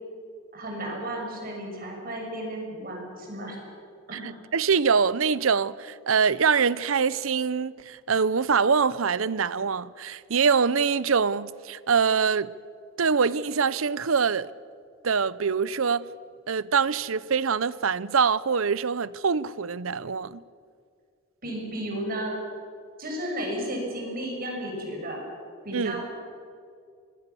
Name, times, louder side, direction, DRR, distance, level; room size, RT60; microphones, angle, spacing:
voice 1, 0.5-3.6 4.1-4.3 21.4-22.4 23.0-25.2 25.6-26.1, right 1 dB, 45° right, 6.6 m, -33 dB
voice 2, 4.1-12.5 13.0-14.5 15.0-16.1 16.5-20.4 25.7-26.0, right 6 dB, 80° right, 0.7 m, -24 dB
26.5 x 20.5 x 7.1 m
head